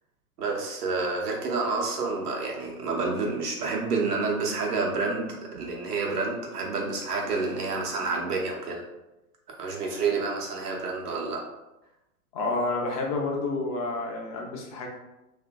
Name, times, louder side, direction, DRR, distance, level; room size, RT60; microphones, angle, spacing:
voice 1, 0.4-8.8 9.6-11.4, right 4 dB, 80° right, -1 dB, 0.8 m, -29 dB
voice 2, 12.3-14.9, left 2 dB, 30° left, 0 dB, 0.4 m, -29 dB
2.8 x 2.5 x 2.2 m, 0.97 s
figure-of-eight pair, 105°, 46 cm